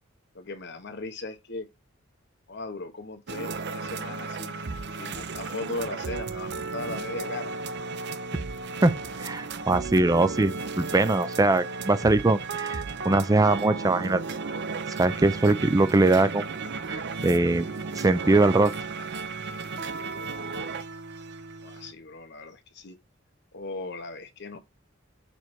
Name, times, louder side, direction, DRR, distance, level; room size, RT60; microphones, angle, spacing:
voice 1, 0.3-1.7 2.5-4.6 5.0-7.5 21.6-23.0 23.5-24.6, left 2 dB, 60° left, 1.1 m, -38 dB
sound 1, 3.3-21.9, right 4 dB, 60° right, 0.7 m, -34 dB
voice 2, 8.8-14.2 15.0-16.5 16.9-17.7 18.0-18.7, right 2 dB, 20° right, 0.4 m, -22 dB
6.8 x 3.3 x 4.4 m
head